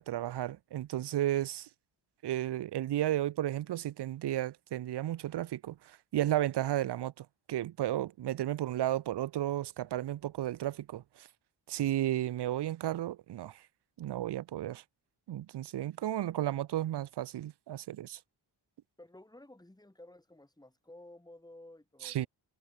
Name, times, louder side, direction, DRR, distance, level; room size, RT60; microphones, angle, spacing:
voice 1, 0.0-1.7 2.2-11.3 11.7-13.6 14.0-14.8 15.3-18.2 22.0-22.3, right 13 dB, 60° right, 0.5 m, -33 dB
voice 2, 19.0-22.3, left 1 dB, 10° left, 4.3 m, -54 dB
wide cardioid pair, 165°, 46 cm